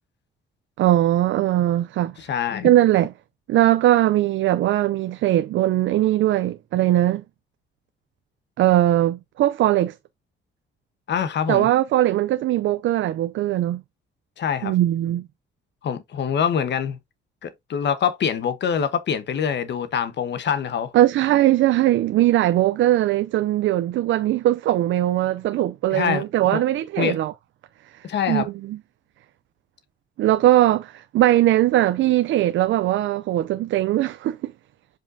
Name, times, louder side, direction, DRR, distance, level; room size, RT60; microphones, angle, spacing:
voice 1, 0.8-2.1 2.6-3.1 3.5-7.2 8.6-9.9 11.5-13.8 14.6-15.3 20.9-27.3 28.3-28.8 30.2-34.5, right 14 dB, 75° right, 0.5 m, -20 dB
voice 2, 2.2-2.7 11.1-11.7 14.4-14.7 15.8-17.0 17.4-20.9 25.9-26.6 27.0-27.2 28.0-28.5, left 8 dB, 60° left, 1.1 m, -25 dB
7.3 x 5.3 x 2.7 m
cardioid pair, 90°, 20 cm